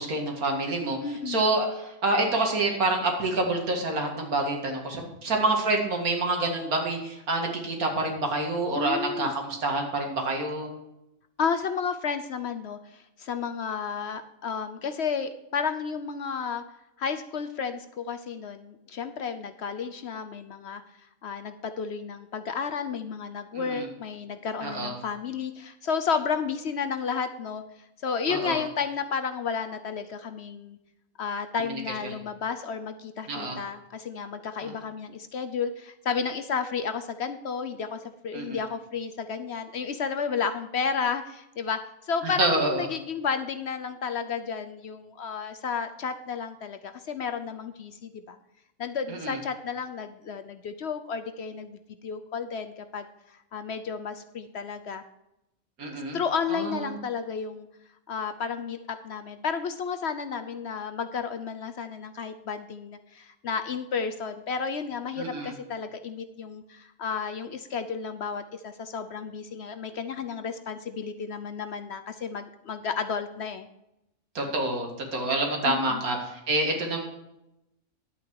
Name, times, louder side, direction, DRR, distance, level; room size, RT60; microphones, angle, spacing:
voice 1, 0.0-1.0 1.3-10.7 23.5-23.9 24.6-24.9 28.3-28.6 31.6-32.2 33.3-33.6 34.6-34.7 38.3-38.6 42.2-42.9 49.1-49.4 55.8-56.2 56.5-57.0 65.2-65.5 74.3-77.0, right 2 dB, 85° right, 2 dB, 2.4 m, -27 dB
voice 2, 1.0-1.5 8.7-9.3 11.4-16.6 17.0-20.8 21.2-27.6 28.0-30.8 31.2-48.4 48.8-53.1 53.5-55.0 55.9-57.7 58.1-73.7 75.6-76.0, left 6 dB, 60° left, 9 dB, 0.8 m, -32 dB
11.0 x 8.5 x 4.7 m, 0.88 s
omnidirectional pair, 1.5 m